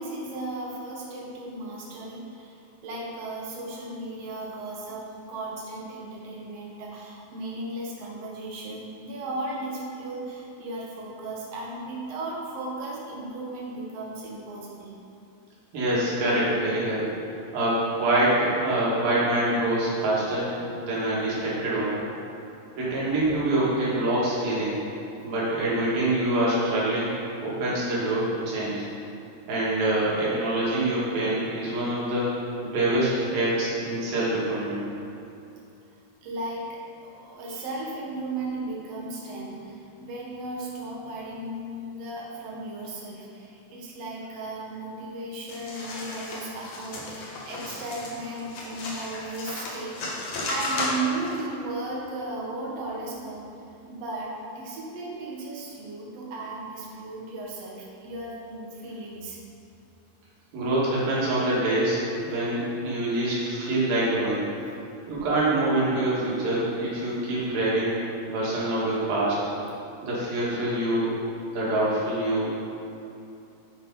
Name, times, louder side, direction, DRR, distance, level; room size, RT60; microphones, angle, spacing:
voice 1, 0.0-15.0 22.4-22.6 36.2-50.1 50.5-53.5 53.9-59.4, right 2 dB, 55° right, -3 dB, 2.2 m, -35 dB
voice 2, 15.7-20.5 20.8-22.0 22.8-24.8 25.2-27.1 27.4-28.9 29.5-32.3 32.6-34.8 60.5-64.5 65.1-68.0 68.3-69.4 70.0-71.2 71.5-72.5, right 1 dB, 80° right, -8 dB, 4.0 m, -25 dB
sound 1, 45.5-51.4, left 2 dB, 55° left, 2.1 m, -34 dB
9.7 x 7.1 x 4.0 m, 2.7 s
omnidirectional pair, 4.1 m